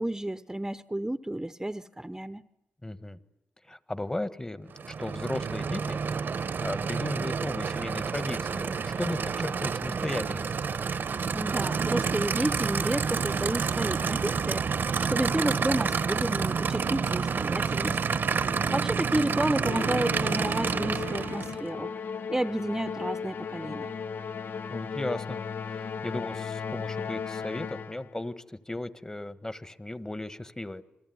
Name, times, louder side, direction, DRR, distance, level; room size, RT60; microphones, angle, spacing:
voice 1, 0.0-2.4 11.3-14.7 15.0-18.0 18.7-21.9 22.3-23.9, right 1 dB, 15° right, 12 dB, 0.9 m, -31 dB
voice 2, 2.8-3.2 3.7-6.0 6.6-10.5 18.5-18.8 24.7-28.3 28.7-30.8, left 1 dB, 20° left, 12 dB, 1.5 m, -36 dB
Aircraft / Idling, 4.7-21.7, right 5 dB, 65° right, 1.1 m, -29 dB
Musical instrument, 19.6-28.1, left 6 dB, 70° left, 0.9 m, -36 dB
28.0 x 21.0 x 9.5 m, 0.95 s
cardioid pair, 60°, 4 cm